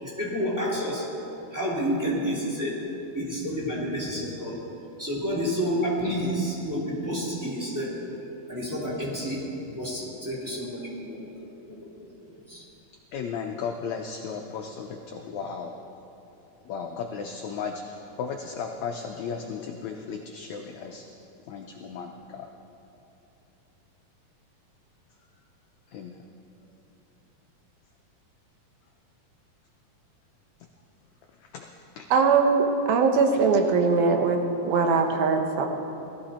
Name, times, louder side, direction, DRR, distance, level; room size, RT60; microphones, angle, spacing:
voice 1, 0.0-1.1 1.5-2.8 3.1-4.6 5.0-8.0 8.5-12.1 12.4-12.6, equal, 5° right, -6 dB, 2.7 m, -30 dB
voice 2, 13.1-15.7 16.6-21.1 21.5-22.5 25.9-26.2 31.4-31.7 31.9-32.1, left 6 dB, 90° left, 3 dB, 1.6 m, -35 dB
voice 3, 32.1-35.7, right 4 dB, 80° right, 4 dB, 2.9 m, -21 dB
19.0 x 14.0 x 4.3 m, 2.9 s
omnidirectional pair, 4.2 m